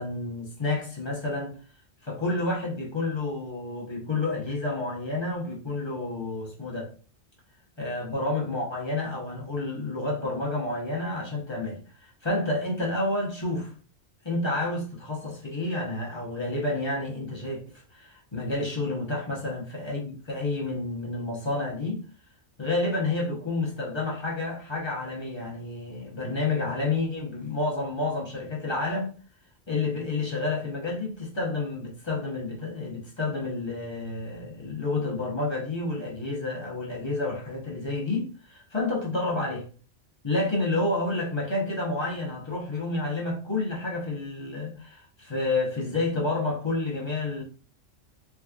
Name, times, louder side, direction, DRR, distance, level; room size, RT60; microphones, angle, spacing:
voice 1, 0.0-1.5 2.0-6.9 7.8-13.7 14.2-22.0 22.6-29.1 29.7-39.6 40.2-47.4, left 2 dB, 25° left, 0.9 m, -30 dB
3.5 x 3.0 x 2.4 m
omnidirectional pair, 1.3 m